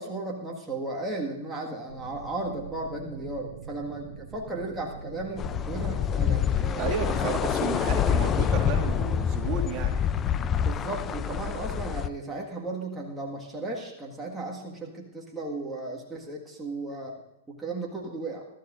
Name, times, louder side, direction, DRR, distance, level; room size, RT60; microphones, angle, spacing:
voice 1, 0.0-7.3 7.7-8.2 10.6-17.2 17.5-18.4, right 2 dB, 10° right, -2 dB, 1.8 m, -35 dB
sound 1, 1.9-11.9, right 6 dB, 80° right, 1.5 m, -44 dB
sound 2, 5.4-12.1, left 8 dB, 25° left, 0.5 m, -26 dB
voice 2, 6.8-10.0, right 6 dB, 40° right, 1 dB, 2.2 m, -32 dB
22.5 x 12.5 x 2.6 m, 0.92 s
hypercardioid pair, 120°, 0 cm